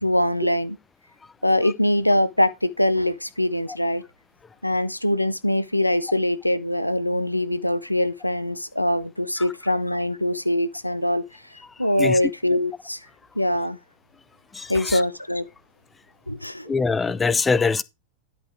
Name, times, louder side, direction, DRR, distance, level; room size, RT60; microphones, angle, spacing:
voice 1, 0.0-0.8 1.4-4.0 4.6-11.2 11.8-13.0 13.4-13.8 14.7-15.5 16.3-16.7, left 1 dB, 85° left, 0.5 m, -23 dB
voice 2, 11.6-12.2 14.5-15.0 16.7-17.8, left 4 dB, 15° left, 0.5 m, -24 dB
10.5 x 5.1 x 4.6 m
figure-of-eight pair, 90°, 0 cm